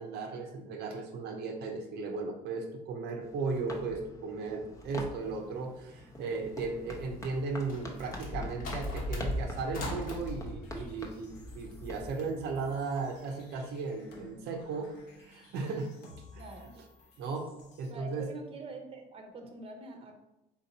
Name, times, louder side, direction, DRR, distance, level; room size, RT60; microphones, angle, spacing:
voice 1, 0.0-15.9 16.3-16.4 17.2-17.5 17.8-18.2, right 4 dB, 75° right, 3 dB, 0.7 m, -36 dB
sound 1, 3.2-12.1, left 1 dB, 20° left, 0.7 m, -41 dB
sound 2, 7.3-10.2, left 1 dB, 55° left, 1.2 m, -42 dB
sound 3, 10.2-17.9, left 1 dB, 85° left, 1.1 m, -54 dB
voice 2, 16.4-16.7 17.9-20.1, right 3 dB, 35° right, 4 dB, 0.8 m, -45 dB
4.3 x 2.8 x 4.0 m, 0.95 s
cardioid pair, 110°, 17 cm